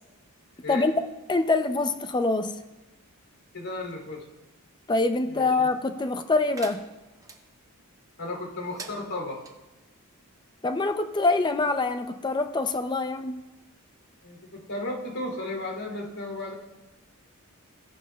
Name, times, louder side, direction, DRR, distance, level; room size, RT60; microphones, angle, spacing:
voice 1, 1.3-2.6 4.9-6.8 10.6-13.4, left 3 dB, 20° left, 9 dB, 0.5 m, -25 dB
voice 2, 3.5-4.2 5.3-5.7 8.2-9.4 14.2-16.6, left 2 dB, 75° left, 0 dB, 3.0 m, -34 dB
sound 1, 6.5-7.4 8.6-9.5, right 3 dB, 15° right, 0.7 m, -44 dB
16.0 x 10.5 x 2.3 m, 1.0 s
head